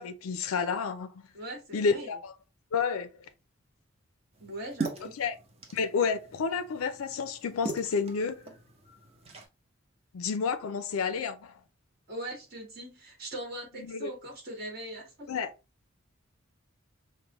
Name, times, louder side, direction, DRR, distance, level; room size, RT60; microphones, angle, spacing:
voice 1, 0.0-1.2 1.7-2.3 2.7-3.1 5.2-5.3 5.7-8.4 10.1-11.5 13.8-14.1 15.3-15.5, left 5 dB, 90° left, 0.4 m, -30 dB
voice 2, 1.3-2.1 4.4-5.2 12.1-15.3, right 1 dB, 45° right, 1.6 m, -40 dB
sound 1, 4.3-9.4, right 3 dB, 30° right, 0.7 m, -41 dB
5.2 x 2.1 x 3.0 m
head